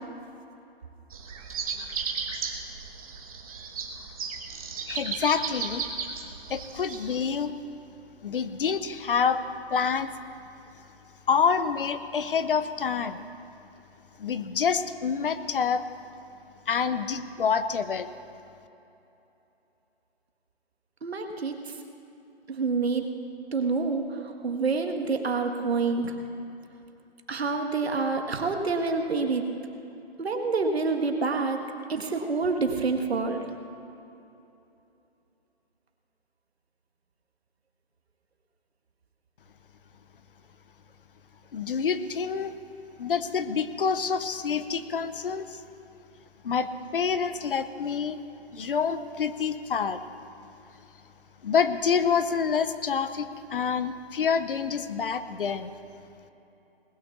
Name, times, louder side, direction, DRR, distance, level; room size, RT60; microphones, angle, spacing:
sound 1, 1.1-7.2, right 5 dB, 35° right, 1.2 m, -35 dB
voice 1, 4.9-5.8 6.5-7.5 8.2-9.4 9.7-10.1 11.3-13.3 14.2-15.8 16.7-18.1 41.5-42.5 43.0-45.6 46.4-48.2 48.5-50.0 51.4-55.7, left 6 dB, 55° left, 12 dB, 0.8 m, -27 dB
voice 2, 21.0-21.7 22.5-23.1 23.5-26.2 27.3-29.4 30.2-31.6 31.9-33.4, right 4 dB, 75° right, 5 dB, 1.7 m, -27 dB
19.5 x 6.6 x 7.1 m, 2.9 s
hypercardioid pair, 160°, 32 cm